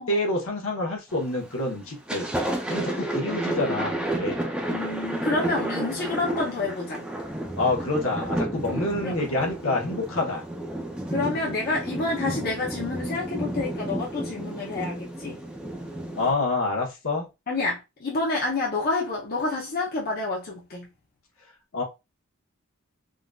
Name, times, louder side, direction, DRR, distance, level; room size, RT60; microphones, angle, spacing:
voice 1, 0.0-2.3 2.7-4.4 7.6-10.4 16.2-17.3 21.7-21.8, left 2 dB, 70° left, 1.0 m, -27 dB
Thunder, 1.1-1.5 1.9-16.3, right 1 dB, 5° right, 0.4 m, -31 dB
voice 2, 4.7-7.1 9.0-9.2 11.1-15.4 17.5-20.9, left 3 dB, 45° left, 0.6 m, -28 dB
3.7 x 2.5 x 2.3 m
head